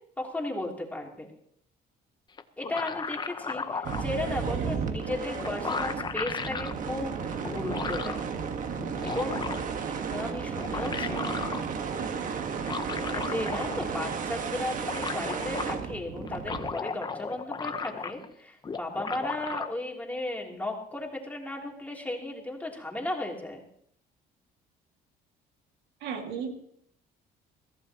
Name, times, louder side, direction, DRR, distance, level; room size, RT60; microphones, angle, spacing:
voice 1, 0.2-1.3 2.6-8.2 9.0-9.5 10.0-11.4 13.1-23.6, left 1 dB, 10° left, -1 dB, 3.0 m, -35 dB
sound 1, 2.4-4.1 5.0-5.1 5.4-6.7 7.4-8.2 8.8-9.8 10.4-11.6 12.5-14.0 14.3-14.4 14.6-15.7 16.2-18.3 18.6-19.7, left 5 dB, 25° left, 0.9 m, -35 dB
sound 2, 3.8-16.7, right 6 dB, 50° right, 1.5 m, -33 dB
voice 2, 11.0-11.6 12.0-12.2 26.0-26.5, right 6 dB, 85° right, 4 dB, 2.1 m, -37 dB
22.5 x 15.0 x 3.0 m, 0.67 s
cardioid pair, 110°, 17 cm